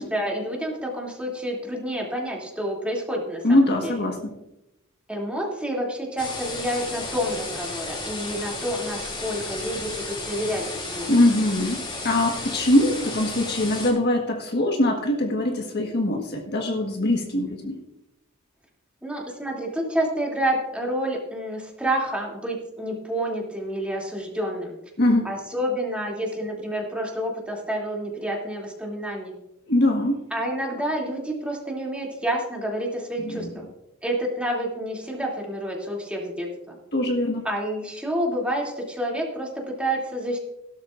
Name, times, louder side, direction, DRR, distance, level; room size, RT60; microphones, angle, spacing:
voice 1, 0.0-3.9 5.1-11.1 19.0-24.8 25.2-29.4 30.3-33.6 34.0-36.8 37.4-40.4, right 1 dB, 5° right, -2 dB, 2.9 m, -29 dB
voice 2, 3.4-4.2 11.1-17.8 25.0-25.3 29.7-30.2 33.2-33.5 36.9-37.4, left 1 dB, 50° left, 2 dB, 1.6 m, -22 dB
sound 1, 6.2-13.9, left 2 dB, 25° left, 3.6 m, -33 dB
17.0 x 12.5 x 2.6 m, 0.90 s
head